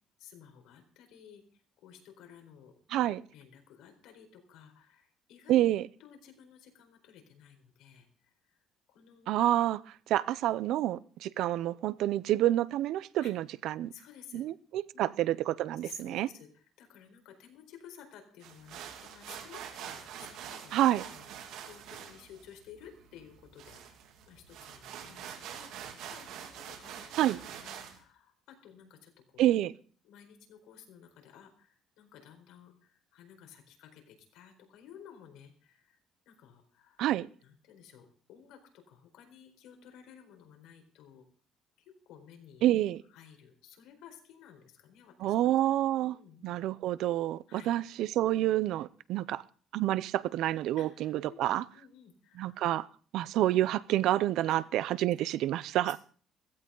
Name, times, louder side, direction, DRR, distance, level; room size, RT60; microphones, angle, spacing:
voice 1, 0.2-2.7 3.1-5.6 6.0-8.1 8.5-8.6 8.9-9.3 10.7-10.9 13.2-13.3 13.9-14.5 14.9-15.1 15.8-20.8 21.1-24.0 24.3-27.3 27.6-29.5 30.0-36.0 36.3-37.1 37.4-41.2 41.9-42.6 43.1-45.4 45.8-45.9 46.1-46.6 47.5-47.7 50.8-51.4 51.7-52.6 54.5-54.6 55.8-56.0, left 8 dB, 85° left, 4.2 m, -55 dB
voice 2, 2.9-3.2 5.5-5.9 9.3-13.9 14.3-16.3 20.7-21.0 27.2-27.4 29.4-29.7 37.0-37.3 42.6-43.0 45.2-46.2 46.4-49.4 49.7-51.6 52.4-52.9 53.1-56.0, right 13 dB, 65° right, 0.6 m, -28 dB
sound 1, 18.4-28.0, right 8 dB, 85° right, 2.9 m, -45 dB
16.0 x 15.5 x 3.9 m
cardioid pair, 170°, 0 cm